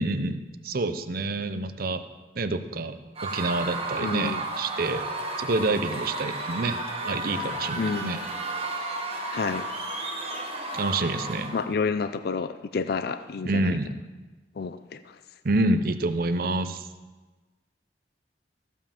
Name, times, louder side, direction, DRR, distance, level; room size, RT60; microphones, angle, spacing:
voice 1, 0.0-2.0 2.4-5.0 5.4-6.8 7.1-8.2 10.7-11.5 13.4-13.9 15.4-16.9, right 2 dB, 50° right, 10 dB, 0.6 m, -27 dB
Screaming / Cheering / Crowd, 3.2-11.7, right 2 dB, 35° right, 1.4 m, -33 dB
voice 2, 4.0-4.4 7.8-8.2 9.3-9.6 11.5-13.8 14.6-15.2, left 5 dB, 55° left, 11 dB, 0.4 m, -29 dB
14.5 x 5.5 x 7.1 m, 1.2 s
head